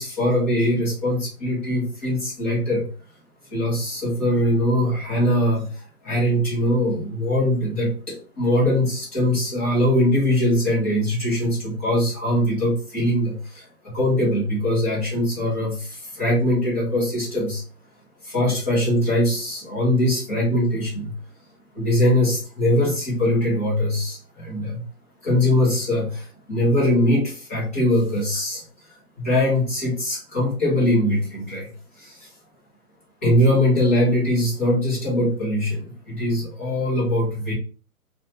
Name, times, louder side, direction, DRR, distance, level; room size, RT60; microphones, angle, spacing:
voice 1, 0.0-2.9 3.5-17.6 18.2-21.1 21.7-24.8 25.2-28.6 29.2-32.3 33.2-37.5, left 1 dB, 10° left, -8 dB, 0.5 m, -22 dB
2.5 x 2.2 x 2.7 m, 0.37 s
hypercardioid pair, 145°, 45 cm